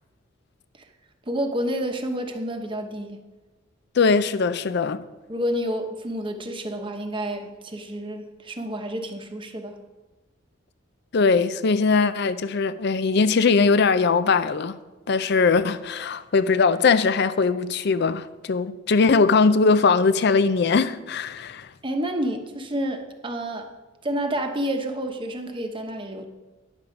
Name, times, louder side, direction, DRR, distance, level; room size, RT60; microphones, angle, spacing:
voice 1, 1.3-3.2 5.3-9.8 21.8-23.7 24.0-26.3, equal, 25° right, 0.9 m, -29 dB
voice 2, 4.0-5.0 11.1-14.7 15.1-21.7, left 4 dB, 55° left, 0.5 m, -20 dB
10.5 x 7.4 x 5.1 m
head